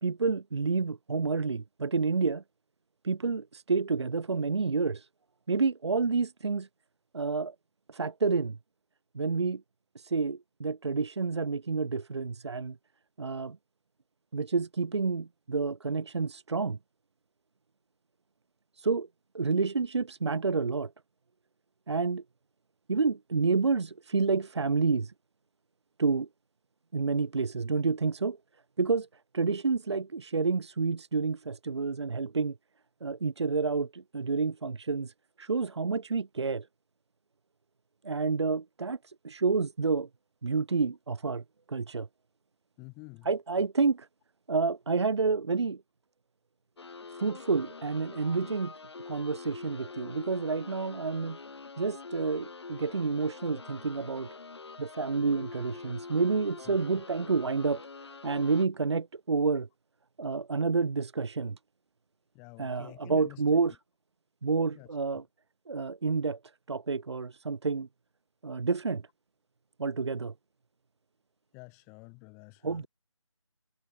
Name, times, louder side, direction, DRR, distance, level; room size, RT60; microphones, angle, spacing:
voice 1, 0.0-2.4 3.0-5.1 5.5-6.7 7.1-7.5 7.9-8.6 9.1-9.6 9.9-12.8 13.2-13.6 14.3-16.8 18.8-19.1 19.3-20.9 21.9-22.2 22.9-25.1 26.0-26.3 26.9-28.4 28.8-29.1 29.3-32.6 33.0-36.7 38.0-40.1 40.4-42.1 43.2-44.1 44.5-45.8 47.2-48.7 49.1-51.4 51.8-54.3 54.8-57.8 58.2-59.7 60.2-61.6 62.6-63.8 64.4-65.2 65.7-66.4 66.7-67.9 68.4-69.0 69.8-70.3 72.6-72.9, right 4 dB, 50° right, 1.0 m, -29 dB
voice 2, 42.8-43.3 56.7-56.8 62.3-63.4 64.7-64.9 71.5-72.9, left 32 dB, 10° left, 3.4 m, -49 dB
sound 1, 46.8-58.7, left 4 dB, 50° left, 2.8 m, -45 dB
figure-of-eight pair, 165°, 18 cm